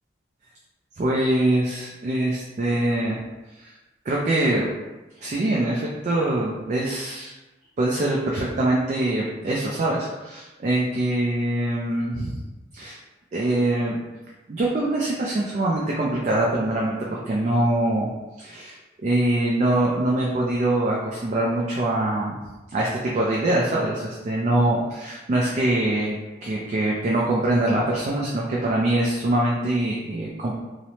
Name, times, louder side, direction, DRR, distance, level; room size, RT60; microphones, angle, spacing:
voice 1, 1.0-3.2 3.6-3.7 4.1-4.7 5.2-7.3 7.8-12.4 12.7-13.0 13.3-14.0 14.5-18.1 18.4-18.8 19.0-22.4 22.7-30.5, right 1 dB, 40° right, -4 dB, 0.3 m, -23 dB
2.9 x 2.0 x 2.7 m, 1.1 s
head